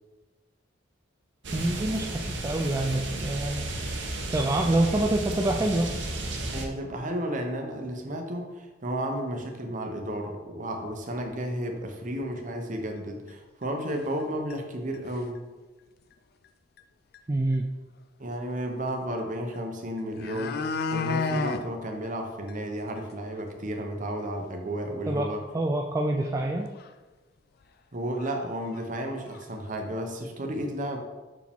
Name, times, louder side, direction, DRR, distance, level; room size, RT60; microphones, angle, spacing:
sound 1, 1.4-6.7, right 2 dB, 70° right, 0.9 m, -33 dB
voice 1, 1.5-3.7 4.3-5.9 17.3-17.7 25.1-26.7, right 1 dB, 15° right, 1 dB, 0.3 m, -26 dB
voice 2, 6.5-15.4 18.2-20.6 20.9-25.4 27.9-31.0, right 1 dB, 45° right, 3 dB, 0.8 m, -33 dB
sound 2, 11.2-11.3 11.8-11.9 12.2-12.3 13.3-13.4 13.9-14.2 14.5-14.6 14.9-15.4 16.8-16.9 17.1-17.2 19.5-19.6 20.0-21.6 22.0-22.1 22.5-22.6 23.0-23.1 23.4-23.5 26.3-26.4 26.7-26.9 27.6-27.7 28.2-28.4 28.6-29.4 29.8-29.9, left 4 dB, 55° left, 0.4 m, -31 dB
5.9 x 4.8 x 3.5 m, 1.2 s
head